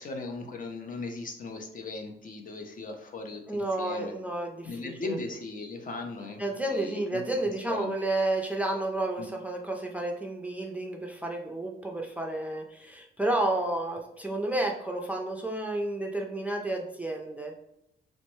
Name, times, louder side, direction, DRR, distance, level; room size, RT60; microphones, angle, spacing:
voice 1, 0.0-4.1 4.6-6.4 6.7-7.2 7.6-7.9 9.2-9.3, left 3 dB, 45° left, 4 dB, 0.6 m, -38 dB
voice 2, 3.5-5.2 6.4-17.5, right 2 dB, 5° right, 1 dB, 0.4 m, -31 dB
3.0 x 2.1 x 3.0 m, 0.78 s
cardioid pair, 90°, 20 cm